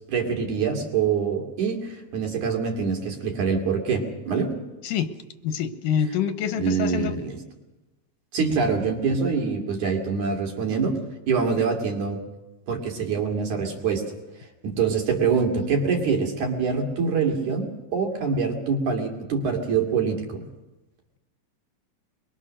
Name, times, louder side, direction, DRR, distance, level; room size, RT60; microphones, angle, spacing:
voice 1, 0.1-4.6 6.6-7.4 8.3-11.0 11.3-12.2 12.7-14.1 14.6-20.4, right 5 dB, 65° right, 2 dB, 4.0 m, -25 dB
voice 2, 5.4-7.1, left 8 dB, 90° left, 10 dB, 2.7 m, -26 dB
23.0 x 22.5 x 6.4 m, 1.0 s
omnidirectional pair, 3.7 m